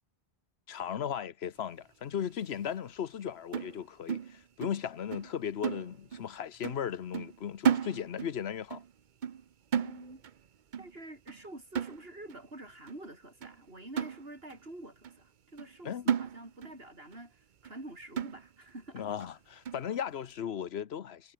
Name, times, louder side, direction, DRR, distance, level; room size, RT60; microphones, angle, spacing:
voice 1, 0.7-8.8 15.8-16.1 18.9-21.3, left 8 dB, 85° left, 1.1 m, -36 dB
sound 1, 3.5-4.8 5.1-5.3 5.6-6.3 6.6-6.9 7.1-8.4 8.7-8.9 9.2-9.5 9.7-10.4 10.7-11.0 11.3-11.5 11.8-12.4 12.9-13.0 13.4-13.6 14.0-14.6 15.0-15.2 15.6-15.8 16.1-16.8 17.1-17.2 17.6-17.8 18.2-18.7 19.2-19.3 19.7-19.9, right 8 dB, 55° right, 0.8 m, -34 dB
voice 2, 9.7-10.2 10.8-19.0, right 1 dB, 75° right, 6.1 m, -47 dB
omnidirectional pair, 1.0 m